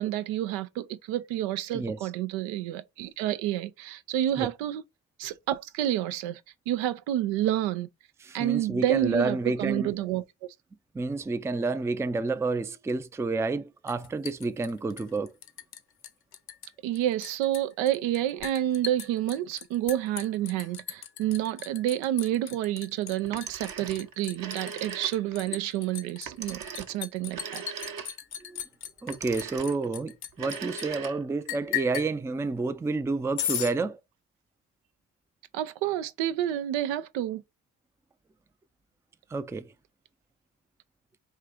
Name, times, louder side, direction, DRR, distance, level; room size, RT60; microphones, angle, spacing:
voice 1, 0.0-4.8 5.2-6.4 6.7-7.9 8.3-10.2 16.8-27.6 35.5-37.4, right 12 dB, 85° right, 0.6 m, -29 dB
voice 2, 8.2-9.9 10.9-15.3 28.4-28.6 29.0-34.0 39.3-39.7, right 3 dB, 5° right, 0.3 m, -30 dB
Liquid, 13.9-15.8 16.0-16.7 16.9-30.9 31.5-32.1 33.4-33.7, left 10 dB, 55° left, 0.7 m, -37 dB
Telephone, 23.2-25.4 26.3-28.4 29.1-29.9 30.3-31.5, right 7 dB, 50° right, 0.9 m, -40 dB
3.6 x 2.5 x 4.3 m
hypercardioid pair, 50°, 45 cm